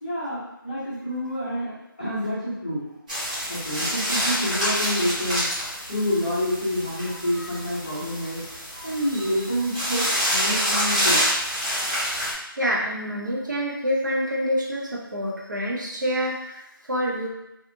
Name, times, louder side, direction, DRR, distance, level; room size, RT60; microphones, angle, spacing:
voice 1, 0.0-2.9 3.5-8.4 8.8-11.4, equal, 20° left, -10 dB, 0.6 m, -28 dB
sound 1, 3.1-12.3, equal, 20° right, 0.8 m, -27 dB
voice 2, 12.2-17.3, equal, 55° right, -2 dB, 0.6 m, -27 dB
2.8 x 2.3 x 2.5 m, 0.87 s
figure-of-eight pair, 170°, 12 cm